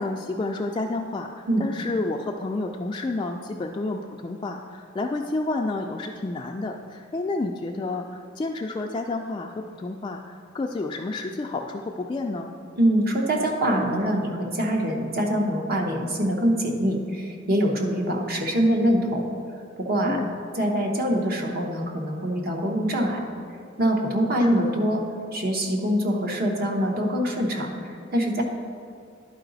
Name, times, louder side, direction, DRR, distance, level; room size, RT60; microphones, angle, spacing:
voice 1, 0.0-12.5 20.0-20.3 24.4-24.7, left 2 dB, 25° left, 2 dB, 0.3 m, -30 dB
voice 2, 12.8-19.3 19.8-20.2 20.5-23.2 23.8-25.0 25.3-28.4, equal, 50° right, 1 dB, 1.0 m, -24 dB
11.0 x 4.8 x 4.0 m, 2.3 s
head